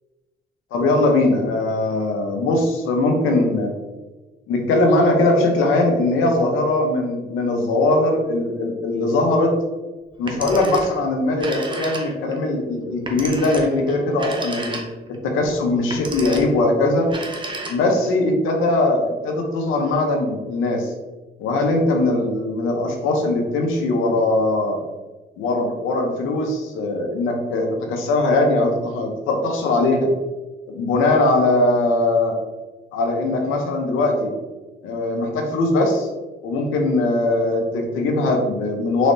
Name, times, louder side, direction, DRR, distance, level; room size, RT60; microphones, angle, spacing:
voice 1, 0.7-3.7 4.5-9.5 10.2-14.8 15.2-17.1 17.7-20.9 21.4-24.8 25.4-30.1 30.7-32.3 32.9-34.3 34.8-36.1 36.4-39.1, left 2 dB, 90° left, 3 dB, 0.8 m, -20 dB
Telephone, 10.1-11.0 11.3-12.4 13.0-15.1 15.8-16.6 17.0-18.1, right 2 dB, 25° right, 0.7 m, -32 dB
4.0 x 3.3 x 2.6 m, 1.2 s
cardioid pair, 90°, 20 cm